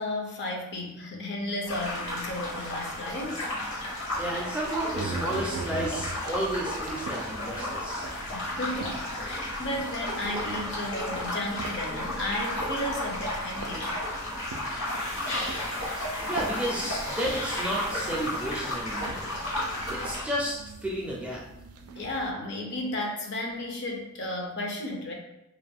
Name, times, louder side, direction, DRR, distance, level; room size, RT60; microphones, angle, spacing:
voice 1, 0.0-3.5 8.3-14.0 22.0-25.1, left 1 dB, 50° left, 1 dB, 0.5 m, -34 dB
sound 1, 1.6-20.2, left 1 dB, 70° left, 1.1 m, -33 dB
sound 2, 4.1-22.3, right 3 dB, 90° right, 0.3 m, -43 dB
voice 2, 4.2-8.1 16.3-19.3 19.9-21.4, right 1 dB, 5° right, -4 dB, 0.4 m, -32 dB
sound 3, 14.8-19.2, left 1 dB, 85° left, 1.4 m, -39 dB
2.5 x 2.1 x 3.3 m, 0.89 s
head